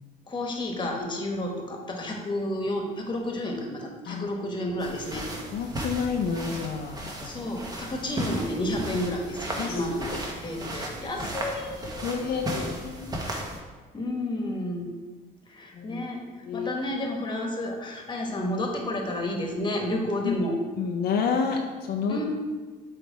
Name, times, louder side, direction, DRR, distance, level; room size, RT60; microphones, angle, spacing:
voice 1, 0.3-5.3 7.2-10.1 10.4-12.4 13.2-13.3 13.9-14.9 15.5-16.2 16.5-20.6 22.1-22.2, left 1 dB, 25° left, 1 dB, 1.3 m, -31 dB
sound 1, 4.8-13.6, right 1 dB, 20° right, 1.1 m, -35 dB
voice 2, 5.5-7.4 9.6-9.7 12.0-13.1 15.8-16.0 16.5-16.7 20.2-20.3 20.8-22.2, left 6 dB, 70° left, 3 dB, 0.6 m, -29 dB
8.1 x 3.4 x 4.7 m, 1.4 s
cardioid pair, 110°, 17 cm